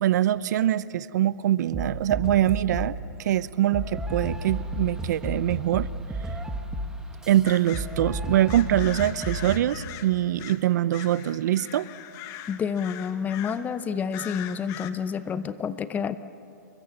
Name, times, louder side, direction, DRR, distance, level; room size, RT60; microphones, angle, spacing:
voice 1, 0.0-5.9 7.3-11.9, right 12 dB, 65° right, 18 dB, 0.6 m, -24 dB
sound 1, 1.7-3.0 3.7-9.7, right 1 dB, 5° right, 1.6 m, -33 dB
sound 2, 7.4-7.9 8.5-10.7 10.9-13.7 14.1-14.9, left 12 dB, 30° left, 1.3 m, -41 dB
voice 2, 12.5-16.2, left 7 dB, 15° left, 13 dB, 0.7 m, -29 dB
28.5 x 23.0 x 7.2 m, 2.6 s
hypercardioid pair, 145°, 10 cm